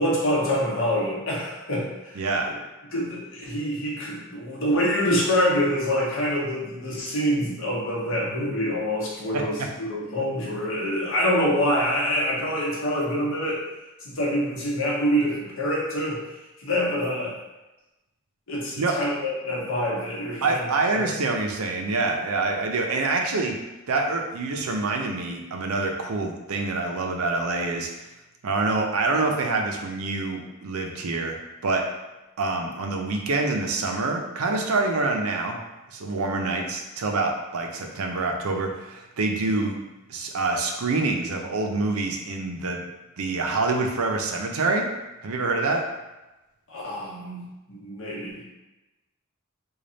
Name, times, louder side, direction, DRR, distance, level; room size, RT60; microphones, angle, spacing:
voice 1, 0.0-2.5 2.9-13.6 14.0-16.2 16.6-17.4 18.5-20.7 20.9-21.0 46.7-47.4 47.7-48.4, equal, 65° left, -5 dB, 1.0 m, -26 dB
voice 2, 2.2-2.5 9.3-9.7 18.8-18.9 20.4-23.5 23.9-27.9 28.4-31.4 31.6-31.8 32.4-35.6 35.9-39.8 40.1-42.8 43.2-44.9 45.2-45.8, right 3 dB, 85° right, 2 dB, 0.5 m, -26 dB
3.3 x 2.3 x 3.9 m, 1.0 s
head